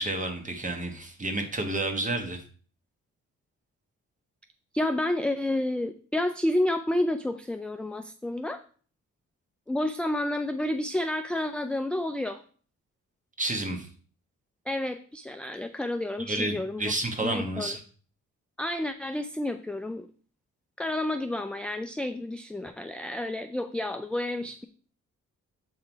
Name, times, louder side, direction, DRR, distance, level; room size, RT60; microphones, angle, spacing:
voice 1, 0.0-2.4 13.4-13.9 16.3-17.8, right 2 dB, 25° right, 5 dB, 1.4 m, -30 dB
voice 2, 4.7-8.6 9.7-12.4 14.7-16.9 17.2-17.8 18.6-20.1 20.8-24.6, left 1 dB, 5° left, 8 dB, 0.3 m, -30 dB
7.7 x 3.7 x 4.5 m, 0.43 s
cardioid pair, 100°, 30 cm